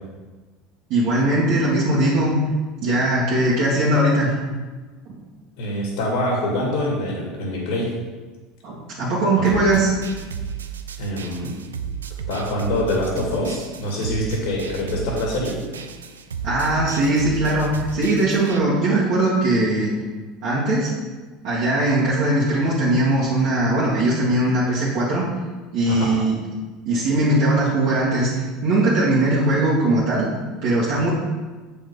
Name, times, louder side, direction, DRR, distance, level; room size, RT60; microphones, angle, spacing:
voice 1, 0.9-2.3 2.8-4.3 8.6-9.9 16.4-19.9 20.4-20.9 21.4-25.2 25.7-26.4 26.9-30.3 30.6-31.1, right 1 dB, 60° right, -8 dB, 2.0 m, -20 dB
voice 2, 5.6-7.9 9.4-9.5 11.0-11.6 12.3-15.6 25.9-26.1, left 1 dB, 70° left, -2 dB, 2.2 m, -25 dB
sound 1, 9.5-18.6, right 6 dB, 85° right, 0.5 m, -33 dB
7.2 x 5.2 x 5.4 m, 1.3 s
hypercardioid pair, 75°, 0 cm